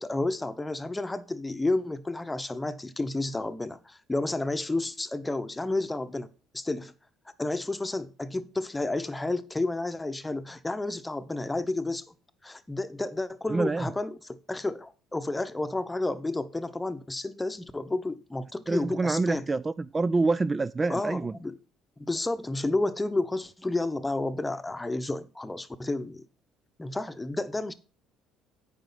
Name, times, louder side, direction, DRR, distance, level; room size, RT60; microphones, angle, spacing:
voice 1, 0.0-6.9 7.4-12.1 12.4-19.4 20.9-21.6 22.0-26.3 26.8-27.7, left 2 dB, 15° left, 0.9 m, -31 dB
voice 2, 13.5-13.9 18.7-21.3, right 3 dB, 25° right, 0.3 m, -26 dB
9.3 x 5.1 x 5.6 m
hypercardioid pair, 70°, 0 cm